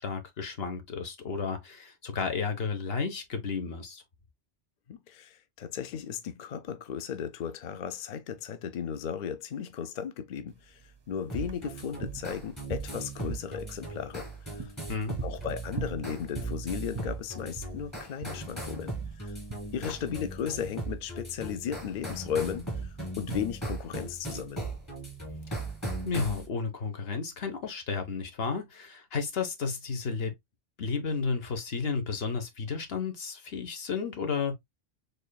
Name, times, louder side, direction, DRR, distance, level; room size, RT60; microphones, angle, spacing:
voice 1, 0.0-4.0 14.9-15.2 26.0-30.3 30.8-34.5, left 5 dB, 75° left, 1.2 m, -32 dB
voice 2, 4.9-14.7 15.2-19.4 19.7-24.6, left 8 dB, 55° left, 0.6 m, -36 dB
sound 1, 10.5-26.1, right 4 dB, 35° right, 0.5 m, -44 dB
sound 2, 11.3-26.5, right 2 dB, 15° left, 1.7 m, -38 dB
4.4 x 3.3 x 2.2 m
omnidirectional pair, 1.0 m